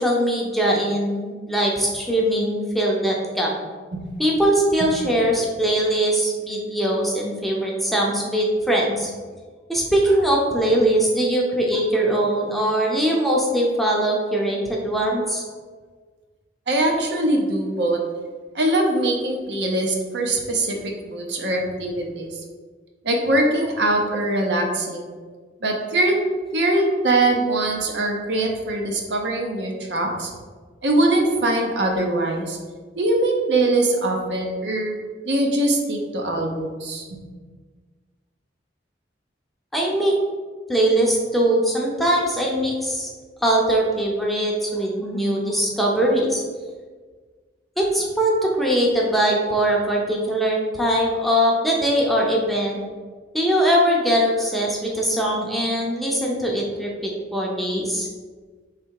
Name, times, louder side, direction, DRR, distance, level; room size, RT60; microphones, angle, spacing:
voice 1, 0.0-3.5 4.2-9.1 9.7-15.4 39.7-40.1 40.7-43.1 43.4-46.4 47.8-52.8 53.3-58.1, right 1 dB, ahead, -3 dB, 0.6 m, -21 dB
voice 2, 16.7-18.0 18.5-22.3 23.0-25.1 25.6-26.1 26.5-30.3 30.8-32.6 33.0-35.0 35.2-37.2, right 2 dB, 70° right, 1 dB, 0.7 m, -22 dB
3.4 x 3.3 x 4.6 m, 1.5 s
head